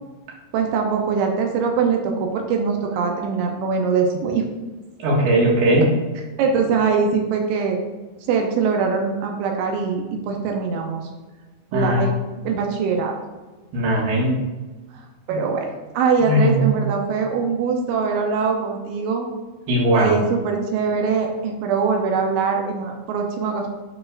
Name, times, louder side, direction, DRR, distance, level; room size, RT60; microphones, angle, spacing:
voice 1, 0.5-4.4 6.4-7.8 8.3-11.0 11.7-12.1 12.4-13.1 15.3-15.7 15.9-19.3 19.9-23.7, right 5 dB, 85° right, 2 dB, 3.1 m, -22 dB
voice 2, 5.0-5.9 11.7-12.0 13.7-14.3 16.2-16.6 19.7-20.2, equal, 65° right, -4 dB, 3.5 m, -18 dB
12.5 x 4.3 x 2.5 m, 1.2 s
omnidirectional pair, 5.0 m